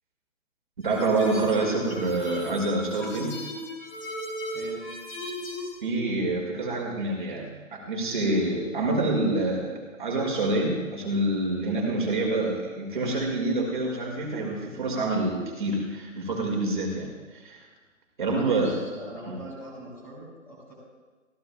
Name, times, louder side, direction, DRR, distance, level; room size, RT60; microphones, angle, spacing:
sound 1, 0.8-5.7, left 1 dB, 40° left, 3.8 m, -35 dB
voice 1, 0.8-3.4 5.8-17.6 18.2-18.8 19.3-19.4, right 2 dB, 35° right, -1 dB, 2.2 m, -27 dB
voice 2, 4.5-4.8 18.2-20.7, right 1 dB, 5° left, -8 dB, 3.0 m, -40 dB
26.0 x 15.0 x 2.4 m, 1.4 s
hypercardioid pair, 175°, 41 cm